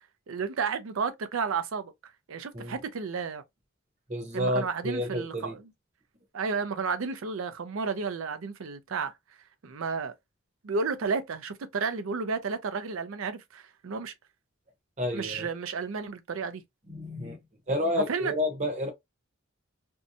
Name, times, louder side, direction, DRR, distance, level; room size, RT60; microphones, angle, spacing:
voice 1, 0.3-1.9 2.3-3.4 4.3-5.7 6.3-9.1 9.6-10.1 10.6-14.1 15.1-16.6 18.0-18.3, right 5 dB, 80° right, 0.5 m, -32 dB
voice 2, 4.1-5.6 15.0-15.5 16.9-17.4 17.7-18.9, left 1 dB, 35° right, 0.8 m, -30 dB
2.7 x 2.1 x 2.6 m
head